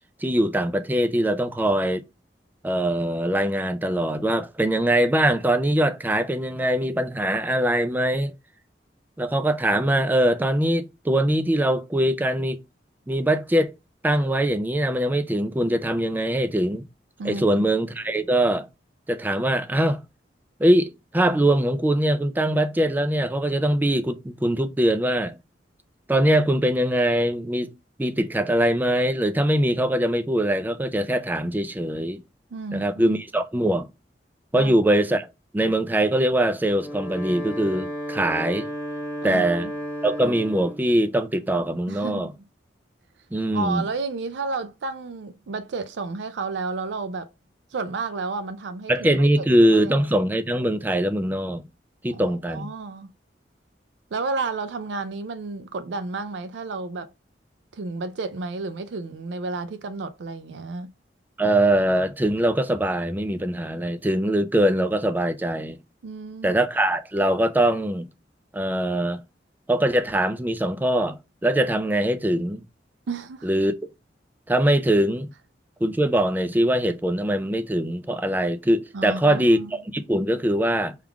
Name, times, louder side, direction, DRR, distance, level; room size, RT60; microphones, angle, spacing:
voice 1, 0.2-2.0 2.6-8.3 9.2-12.6 13.1-13.7 14.0-16.8 17.2-18.7 19.1-20.0 20.6-25.4 26.1-27.7 28.0-32.2 32.7-33.9 34.5-35.3 35.5-38.7 39.2-39.7 40.0-42.3 43.3-43.8 48.9-51.6 52.0-52.7 61.4-65.8 66.4-68.1 68.5-69.2 69.7-72.6 73.4-73.7 74.5-75.3 75.8-81.0, right 1 dB, 10° right, 0.4 m, -22 dB
voice 2, 17.2-17.6 32.5-33.2 34.5-34.7 39.2-39.7 41.9-42.3 43.5-47.3 47.7-50.1 52.1-53.1 54.1-57.1 57.7-60.9 66.0-66.6 73.1-73.5 78.9-79.7, right 3 dB, 75° right, 0.4 m, -32 dB
Wind instrument woodwind instrument, 36.7-40.9, equal, 10° left, 1.3 m, -33 dB
3.6 x 2.4 x 4.5 m
head